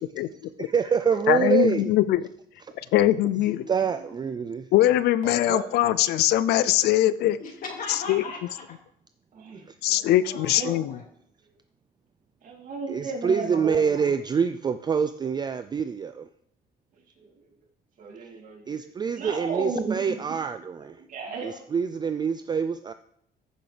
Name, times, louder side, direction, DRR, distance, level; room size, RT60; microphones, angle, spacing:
voice 1, 0.6-1.9 3.7-4.7 12.9-16.3 18.7-21.0 21.4-22.9, right 6 dB, 25° right, 0.4 m, -26 dB
voice 2, 1.3-2.2 2.9-3.7 4.7-7.4 7.9-8.2 9.8-10.9, left 13 dB, 75° left, 0.4 m, -22 dB
voice 3, 5.2-5.9 9.3-9.7 10.2-10.8 12.4-14.1 17.2-17.3 18.0-20.0 21.0-21.5 22.0-22.1, right 4 dB, 50° right, 2.5 m, -35 dB
voice 4, 7.4-8.8 9.8-11.0 21.2-21.6, left 4 dB, 55° left, 2.5 m, -39 dB
14.5 x 6.3 x 3.4 m
cardioid pair, 110°, 17 cm